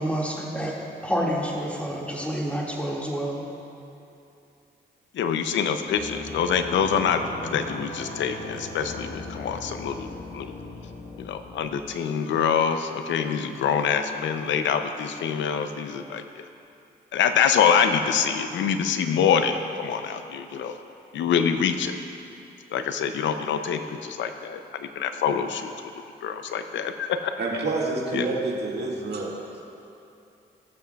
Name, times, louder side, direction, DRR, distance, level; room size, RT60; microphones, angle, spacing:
voice 1, 0.0-3.4, equal, 5° left, -3 dB, 2.0 m, -28 dB
voice 2, 5.1-10.1 10.3-10.5 11.2-16.5 17.1-20.8 21.1-22.0 22.7-25.7 26.2-27.3 28.1-28.3, left 7 dB, 90° left, 8 dB, 0.6 m, -25 dB
sound 1, 5.9-11.8, left 2 dB, 55° left, 1.2 m, -38 dB
voice 3, 27.4-29.7, right 3 dB, 65° right, -3 dB, 1.9 m, -28 dB
19.5 x 7.3 x 2.3 m, 2.7 s
cardioid pair, 70°, 19 cm